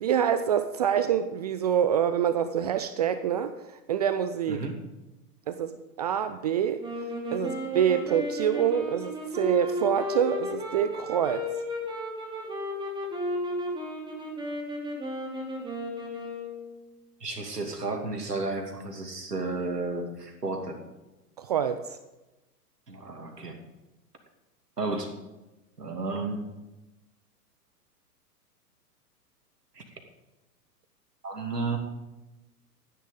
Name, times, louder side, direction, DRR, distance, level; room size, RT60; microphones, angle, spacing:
voice 1, 0.0-3.5 3.9-4.6 5.5-6.8 7.3-11.5 21.4-22.0, right 8 dB, 25° right, 11 dB, 0.4 m, -26 dB
voice 2, 4.5-4.8 17.2-20.8 22.9-23.6 24.8-25.1 25.8-26.5 29.7-29.8 31.2-31.8, right 3 dB, 80° right, 4 dB, 2.7 m, -32 dB
sound 1, 6.8-16.8, left 1 dB, 10° right, 2.8 m, -34 dB
14.5 x 9.7 x 5.2 m, 1.0 s
figure-of-eight pair, 110°, 47 cm